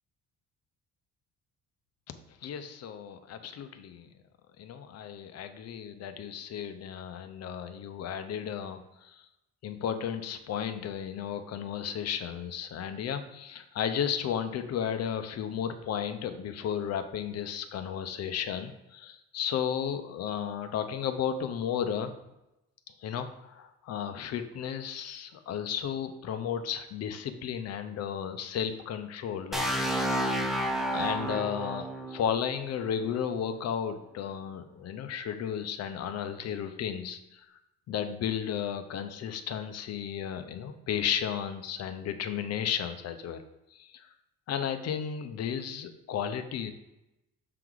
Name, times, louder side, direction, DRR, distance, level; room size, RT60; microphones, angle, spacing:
voice 1, 2.4-4.1 4.6-9.2 9.6-22.1 23.0-30.2 30.9-37.2 37.9-43.4 43.8-43.9 44.5-46.7, left 8 dB, 50° left, 9 dB, 0.6 m, -34 dB
sound 1, 29.5-33.4, equal, ahead, 0.4 m, -31 dB
6.8 x 3.9 x 4.6 m, 0.93 s
cardioid pair, 175°, 33 cm